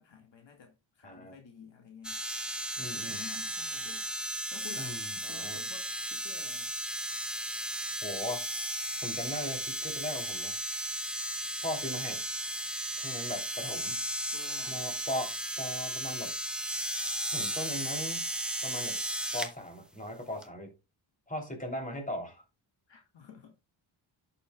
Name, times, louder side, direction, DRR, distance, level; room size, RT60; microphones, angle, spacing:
voice 1, 0.0-2.2 2.8-4.1 4.5-5.0 5.3-6.7 14.3-14.8 22.9-23.5, left 6 dB, 65° left, 1.8 m, -51 dB
voice 2, 1.0-1.3 2.8-3.2 4.8-5.6 8.0-8.4 9.0-10.6 11.6-12.2 13.0-14.0 14.7-16.3 17.3-18.3 18.6-19.0 19.3-20.7 21.3-22.4, left 1 dB, 15° left, 3.1 m, -38 dB
sound 1, 2.0-19.5 20.4-20.5, right 1 dB, ahead, 1.1 m, -35 dB
11.0 x 6.9 x 2.3 m
cardioid pair, 80°, 48 cm